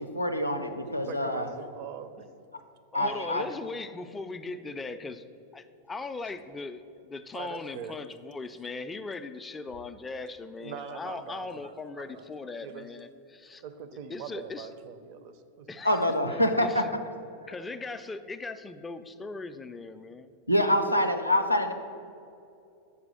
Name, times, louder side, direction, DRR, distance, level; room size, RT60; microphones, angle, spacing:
voice 1, 0.0-1.5 2.9-3.4 15.8-16.8 20.5-21.7, left 1 dB, 90° left, 6 dB, 0.5 m, -26 dB
voice 2, 0.9-2.3 7.3-8.0 10.6-12.3 12.6-12.9 13.6-15.7, right 7 dB, 45° right, 11 dB, 0.5 m, -42 dB
voice 3, 2.9-5.2 5.5-13.6 14.1-14.7 15.7-16.1 16.6-16.9 17.5-20.3, left 3 dB, 15° left, 11 dB, 0.3 m, -39 dB
5.6 x 4.7 x 6.3 m, 2.6 s
figure-of-eight pair, 90°, 0 cm